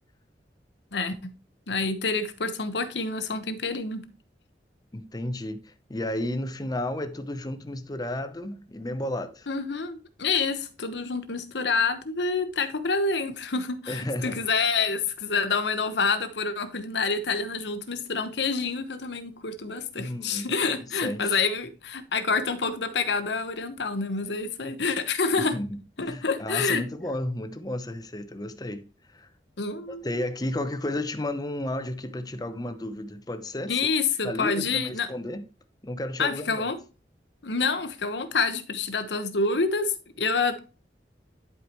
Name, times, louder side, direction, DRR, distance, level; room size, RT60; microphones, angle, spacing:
voice 1, 0.9-1.3 1.7-4.1 9.5-25.6 26.0-26.8 29.6-30.0 33.7-35.1 36.2-36.8 37.4-40.6, left 4 dB, 80° left, 1.1 m, -27 dB
voice 2, 4.9-9.5 13.9-14.4 20.0-21.4 25.4-28.9 29.1-29.3 29.9-33.8 34.2-35.4 35.8-36.7, left 1 dB, 20° left, 0.7 m, -33 dB
11.5 x 4.9 x 3.0 m
head